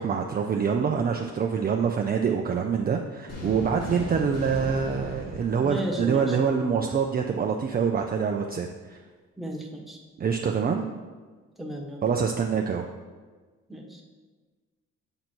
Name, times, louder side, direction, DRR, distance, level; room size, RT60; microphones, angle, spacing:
voice 1, 0.0-9.0 10.2-10.9 12.0-12.9, right 6 dB, 30° right, 3 dB, 0.5 m, -25 dB
sound 1, 3.3-6.7, equal, 55° left, 2.1 m, -37 dB
voice 2, 5.6-6.4 9.4-10.0 11.6-12.0 13.7-14.0, right 1 dB, ahead, -1 dB, 1.2 m, -34 dB
7.7 x 4.0 x 4.5 m, 1.4 s
cardioid pair, 90°, 30 cm